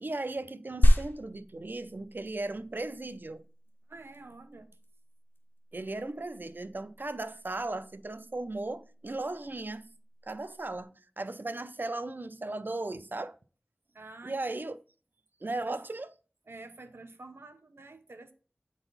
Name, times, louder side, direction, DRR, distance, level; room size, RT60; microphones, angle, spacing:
voice 1, 0.0-3.4 5.7-9.9 10.2-13.4 14.2-14.8 15.4-16.1, right 2 dB, 55° right, 0.5 m, -36 dB
sound 1, 0.8-10.8, equal, 65° left, 1.4 m, -32 dB
voice 2, 3.9-4.7 13.9-14.6 15.4-15.8 16.5-18.3, right 2 dB, 85° right, 0.8 m, -48 dB
8.8 x 4.0 x 4.0 m
wide cardioid pair, 50°, 4 cm